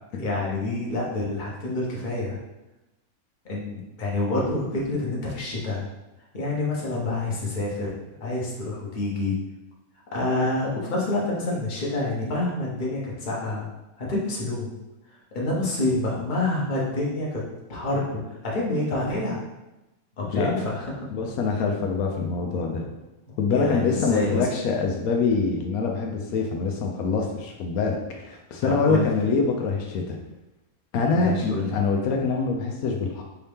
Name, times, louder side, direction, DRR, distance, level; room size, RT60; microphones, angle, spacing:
voice 1, 0.2-2.4 3.4-5.8 6.3-9.3 10.1-13.7 14.0-14.7 15.3-17.4 17.7-19.4 20.2-20.9 22.6-22.7 23.5-24.5 28.6-29.1 31.1-31.7, left 2 dB, 35° left, -4 dB, 1.0 m, -27 dB
voice 2, 21.1-22.9 23.4-30.2 30.9-33.2, left 4 dB, 80° left, 1 dB, 1.1 m, -25 dB
4.6 x 2.8 x 3.4 m, 0.99 s
omnidirectional pair, 1.5 m